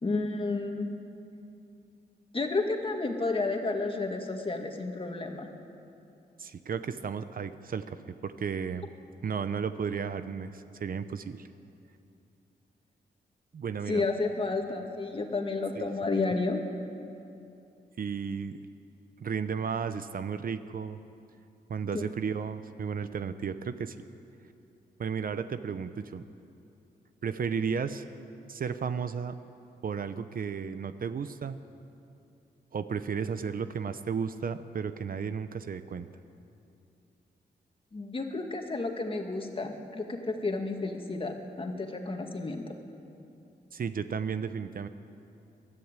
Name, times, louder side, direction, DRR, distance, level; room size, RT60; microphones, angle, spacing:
voice 1, 0.0-0.9 2.3-5.5 13.9-16.6 21.9-22.1 37.9-42.6, left 3 dB, 30° left, 3 dB, 2.1 m, -31 dB
voice 2, 6.4-8.0 8.2-8.9 9.2-11.5 13.5-14.0 15.8-15.9 18.0-18.6 19.2-21.0 21.7-24.0 25.0-26.2 27.2-28.0 28.5-29.3 29.8-31.6 32.7-36.1 43.7-44.9, right 6 dB, 55° right, 11 dB, 0.8 m, -33 dB
22.5 x 13.5 x 9.0 m, 2.7 s
wide cardioid pair, 120°, 17 cm